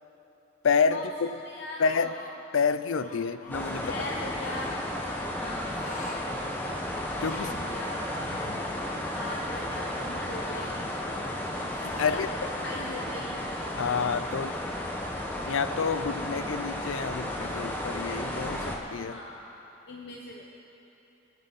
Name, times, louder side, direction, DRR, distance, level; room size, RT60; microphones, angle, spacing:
voice 1, 0.6-1.1 1.8-2.2 2.5-3.9 7.2-7.5 8.4-8.6 11.8-12.3 13.8-14.6 15.5-19.2, left 5 dB, 80° left, 12 dB, 0.5 m, -28 dB
voice 2, 1.4-2.1 3.2-3.3 3.8-4.8 5.4-5.9 6.4-6.6 7.1-8.5 9.1-10.9 11.9-12.2 12.6-13.4 19.0-19.4 19.9-20.5, left 2 dB, 55° left, -2 dB, 1.0 m, -40 dB
sound 1, 1.7-2.3 2.9-3.6 4.3-4.8 5.6-6.2 6.6-6.7 7.0-7.6 8.3-9.7 10.4-11.4 11.7-12.3, left 2 dB, 40° left, 1.2 m, -45 dB
sound 2, 3.5-18.8, left 1 dB, 10° left, 1.0 m, -33 dB
23.0 x 8.8 x 4.1 m, 3.0 s
head